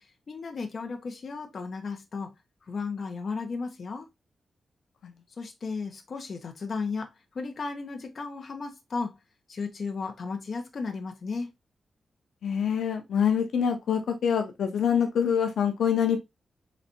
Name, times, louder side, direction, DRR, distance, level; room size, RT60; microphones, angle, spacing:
voice 1, 0.0-2.3 2.6-4.1 5.4-9.1 9.5-11.5, left 4 dB, 45° left, 0.9 m, -34 dB
voice 2, 12.4-16.2, left 7 dB, 80° left, 0.8 m, -25 dB
4.1 x 3.2 x 2.8 m
wide cardioid pair, 165°, 0 cm